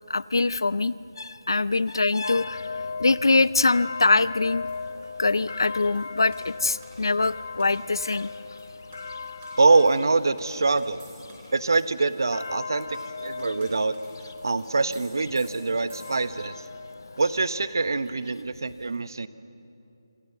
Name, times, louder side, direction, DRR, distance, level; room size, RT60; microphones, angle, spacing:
voice 1, 0.1-2.7 3.0-4.7 5.2-8.3, left 3 dB, 70° left, 18 dB, 0.5 m, -23 dB
sound 1, 2.2-18.3, left 4 dB, 50° left, 1.2 m, -39 dB
sound 2, 3.1-16.6, right 3 dB, 15° right, 4.0 m, -56 dB
voice 2, 9.6-11.0 11.5-13.9 14.4-16.5 17.2-19.3, right 3 dB, 55° right, 14 dB, 1.0 m, -24 dB
26.0 x 26.0 x 7.2 m, 2.8 s
figure-of-eight pair, 175°, 2 cm